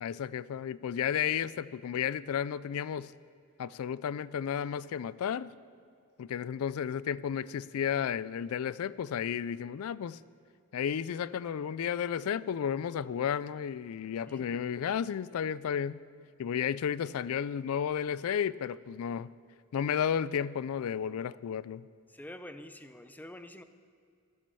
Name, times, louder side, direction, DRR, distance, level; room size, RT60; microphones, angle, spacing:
voice 1, 0.0-3.1 3.6-5.5 6.2-10.2 10.7-16.0 16.4-19.3 19.7-21.9, left 8 dB, 70° left, 18 dB, 0.3 m, -33 dB
voice 2, 14.3-14.6 22.1-23.6, left 1 dB, 10° left, 10 dB, 0.6 m, -47 dB
14.0 x 12.0 x 6.9 m, 2.3 s
head